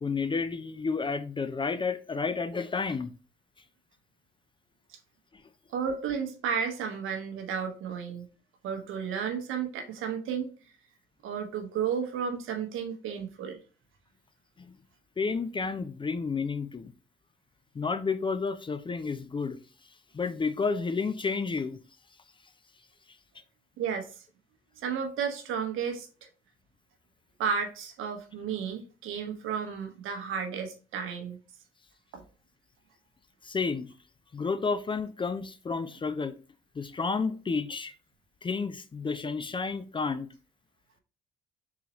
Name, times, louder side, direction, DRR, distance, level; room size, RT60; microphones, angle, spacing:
voice 1, 0.0-3.1 5.3-5.4 14.6-14.8 15.2-16.9 17.7-19.6 20.1-21.8 33.4-33.9 34.3-36.3 36.8-37.9 38.4-40.3, left 4 dB, 25° left, 0.4 m, -31 dB
voice 2, 5.7-8.2 8.6-10.5 11.2-13.6 23.8-24.3 24.8-26.1 27.4-31.4 32.1-32.2, right 7 dB, 75° right, 0.8 m, -33 dB
3.9 x 2.9 x 2.9 m
supercardioid pair, 60°, 21 cm